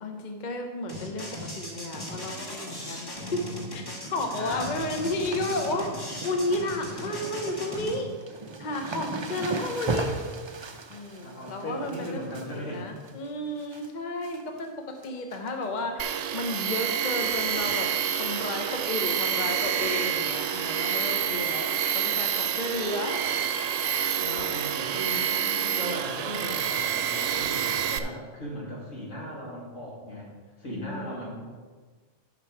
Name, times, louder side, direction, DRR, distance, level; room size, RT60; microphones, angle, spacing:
voice 1, 0.0-5.9 6.2-8.1 8.6-10.2 10.9-12.2 12.5-21.7 21.9-23.3 24.2-24.5 25.3-25.7 30.7-31.3, left 2 dB, 40° left, 4 dB, 0.9 m, -33 dB
sound 1, 0.9-8.0, left 1 dB, 20° left, 1.3 m, -38 dB
sound 2, 4.1-4.4 4.7-13.9 14.2-14.7 15.0-15.8 16.1-16.2 17.2-17.5 17.7-17.8 18.2-18.3 19.9-20.0 20.7-20.8, right 3 dB, 50° right, 0.3 m, -37 dB
voice 2, 4.3-4.7 7.8-8.0 11.2-12.8 24.5-30.3 30.6-31.3, equal, 75° left, -4 dB, 2.7 m, -37 dB
Tools, 16.0-28.0, right 9 dB, 80° right, 0.9 m, -28 dB
11.0 x 6.0 x 4.6 m, 1.5 s
omnidirectional pair, 1.3 m